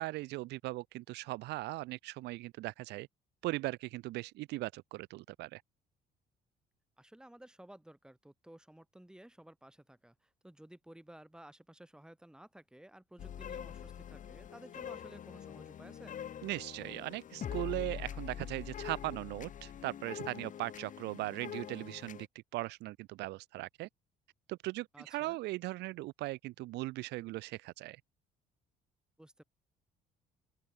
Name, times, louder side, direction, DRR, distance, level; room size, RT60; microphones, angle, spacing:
voice 1, 0.0-3.1 3.4-5.6 16.4-22.3 22.5-23.9 24.5-28.0, right 19 dB, 85° right, 1.6 m, -39 dB
voice 2, 7.0-16.2 24.9-25.4 29.2-29.4, right 1 dB, 5° right, 4.6 m, -55 dB
sound 1, 13.2-22.3, left 9 dB, 50° left, 3.0 m, -44 dB
open air
cardioid pair, 110°, 17 cm